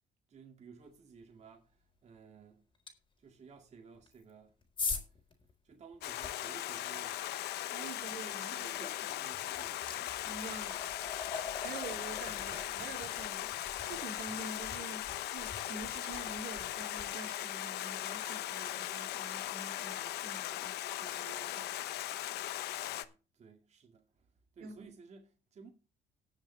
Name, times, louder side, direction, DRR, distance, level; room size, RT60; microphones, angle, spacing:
voice 1, 0.3-2.6 3.2-4.5 4.9-5.1 5.6-7.4 7.8-7.9 8.3-9.9 12.3-12.6 19.2-19.4 22.9-24.3 24.5-25.7, right 5 dB, 40° right, 2.2 m, -55 dB
sound 1, 2.9-3.0 4.0-6.4 8.7-8.9 9.3-20.3, left 4 dB, 30° left, 4.1 m, -45 dB
Stream, 6.0-23.0, left 14 dB, 80° left, 1.0 m, -39 dB
voice 2, 7.7-8.7 10.2-11.0 11.4-21.7 24.6-24.9, right 4 dB, 60° right, 2.8 m, -47 dB
19.5 x 7.2 x 3.3 m
cardioid pair, 110°, 17 cm